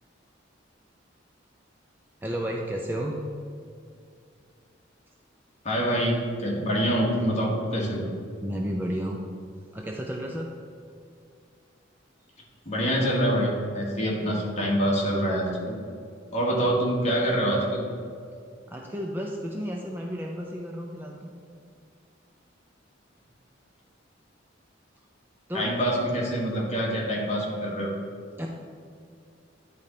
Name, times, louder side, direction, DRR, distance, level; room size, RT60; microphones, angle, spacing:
voice 1, 2.2-3.2 7.9-8.0 8.4-9.2 9.7-10.5 18.7-21.3 25.5-25.7 28.4-28.5, equal, 10° right, 0 dB, 0.5 m, -32 dB
voice 2, 5.6-8.0 12.6-15.8 16.3-17.8 25.5-27.9, equal, 35° left, -3 dB, 1.5 m, -25 dB
9.7 x 3.9 x 4.2 m, 2.3 s
head